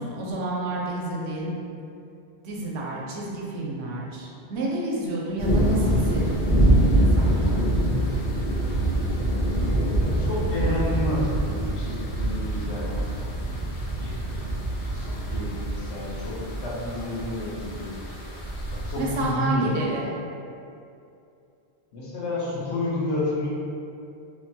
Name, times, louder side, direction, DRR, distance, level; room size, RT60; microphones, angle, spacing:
voice 1, 0.0-1.5 2.4-7.6 19.0-20.1, right 2 dB, 80° right, -3 dB, 0.8 m, -30 dB
sound 1, 5.4-19.3, right 1 dB, 55° left, 0.8 m, -25 dB
voice 2, 10.2-13.1 13.9-18.0 18.8-20.1 21.9-23.5, left 2 dB, 90° left, -7 dB, 1.0 m, -30 dB
3.0 x 2.1 x 2.6 m, 2.6 s
omnidirectional pair, 1.1 m